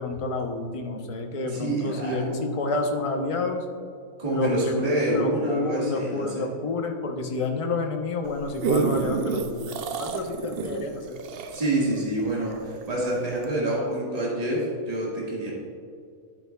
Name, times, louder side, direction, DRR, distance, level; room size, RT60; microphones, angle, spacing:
voice 1, 0.0-3.6 4.3-4.7 5.1-11.1, left 3 dB, 30° left, 3 dB, 0.6 m, -29 dB
voice 2, 1.4-2.4 4.2-6.5 10.1-10.2 11.5-15.5, right 1 dB, 25° right, -5 dB, 1.8 m, -27 dB
sound 1, 8.2-12.9 13.4-13.5, right 5 dB, 60° right, 0.6 m, -29 dB
11.5 x 8.3 x 2.3 m, 2.3 s
omnidirectional pair, 1.5 m